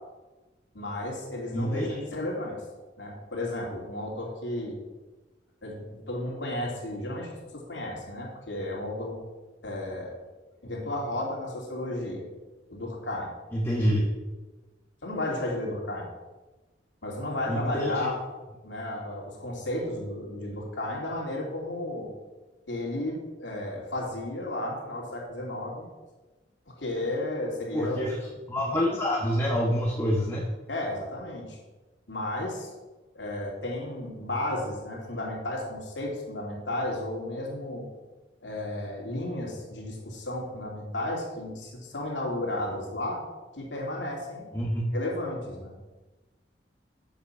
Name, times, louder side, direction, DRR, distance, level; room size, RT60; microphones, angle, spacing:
voice 1, 0.7-2.6 3.0-4.8 5.6-9.2 9.6-10.1 10.6-12.2 12.7-13.3 15.0-16.1 17.0-18.2 18.6-22.1 22.7-25.9 26.8-28.0 28.6-28.8 30.7-31.6 32.1-32.7 33.1-37.8 38.4-43.2 43.5-44.5 44.9-45.8, left 1 dB, 80° left, -2 dB, 2.7 m, -33 dB
voice 2, 1.5-2.0 13.5-14.1 17.5-18.1 27.7-28.1 28.5-30.5 44.5-44.8, equal, 15° left, -3 dB, 1.2 m, -27 dB
8.2 x 7.3 x 5.7 m, 1.2 s
head